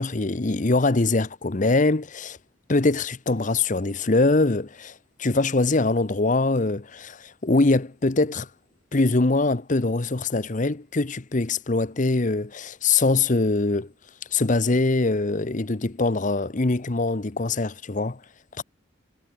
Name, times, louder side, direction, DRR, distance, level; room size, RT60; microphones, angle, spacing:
voice 1, 0.0-2.4 2.7-8.5 8.9-13.9 14.3-18.2 18.6-18.7, left 3 dB, 40° left, 0.9 m, -23 dB
head